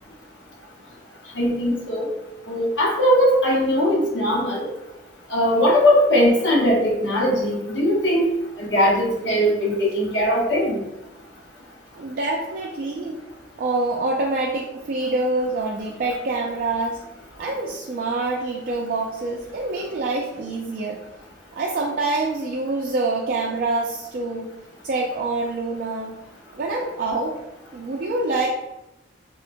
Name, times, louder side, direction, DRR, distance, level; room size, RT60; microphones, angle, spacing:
voice 1, 1.3-2.1 2.5-4.7 5.3-8.3 8.6-10.8, equal, 80° left, -2 dB, 0.9 m, -20 dB
voice 2, 12.0-13.2 13.6-17.0 17.4-21.0 21.5-24.5 24.8-26.1 26.5-27.3 27.7-28.5, right 2 dB, 55° right, 0 dB, 0.3 m, -26 dB
3.7 x 2.1 x 2.5 m, 0.98 s
head